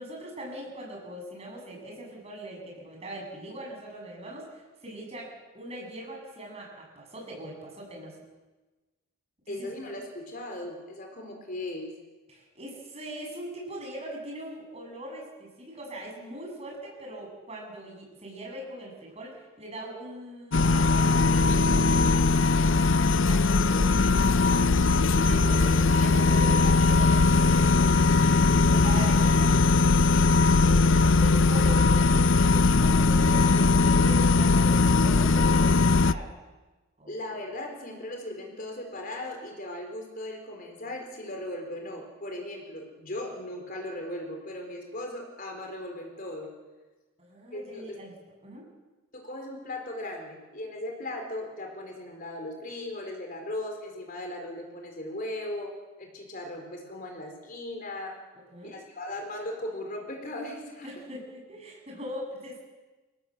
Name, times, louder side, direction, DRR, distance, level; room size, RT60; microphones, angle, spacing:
voice 1, 0.0-8.2 9.5-9.7 12.3-21.2 21.6-22.1 23.3-24.7 25.1-28.1 28.5-29.6 30.6-30.8 31.1-36.3 37.0-37.1 47.2-48.1 48.4-48.7 58.5-58.8 60.8-62.6, right 1 dB, 30° right, -1 dB, 7.8 m, -41 dB
voice 2, 9.5-11.9 23.6-24.0 37.1-46.5 47.5-48.0 49.1-55.7 56.0-58.2 58.6-60.9, left 1 dB, 40° left, 2 dB, 4.5 m, -38 dB
sound 1, 20.5-36.1, left 3 dB, 65° left, 0.7 m, -20 dB
28.0 x 17.5 x 8.0 m, 1.2 s
head